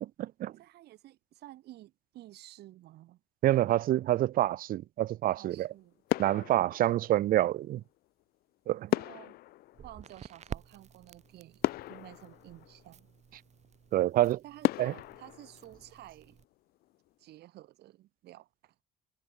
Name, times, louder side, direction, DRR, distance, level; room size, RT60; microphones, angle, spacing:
voice 1, 0.0-0.5 3.4-5.7 6.2-7.8 8.7-8.8 13.9-14.4 14.8-14.9, right 14 dB, 55° right, 0.5 m, -27 dB
voice 2, 0.6-3.2 5.3-6.0 8.7-9.4 9.8-11.6 11.9-13.1 14.4-16.4 17.2-18.7, right 15 dB, 75° right, 7.1 m, -52 dB
sound 1, 5.4-5.8 6.1-7.6 8.9-10.8 11.2-11.3 11.6-13.2 13.8-13.9 14.6-16.5 16.8-17.1, left 17 dB, 65° left, 0.4 m, -36 dB
Crackle, 9.7-16.4, right 8 dB, 40° right, 2.1 m, -50 dB
cardioid pair, 110°, 17 cm